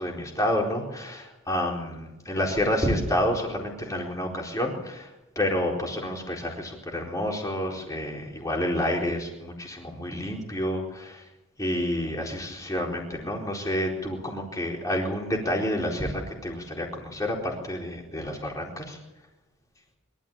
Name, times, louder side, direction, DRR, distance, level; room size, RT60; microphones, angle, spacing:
voice 1, 0.0-5.1 5.4-11.2 11.6-19.0, left 1 dB, 15° left, 0 dB, 4.2 m, -29 dB
23.5 x 13.5 x 8.8 m, 1.0 s
head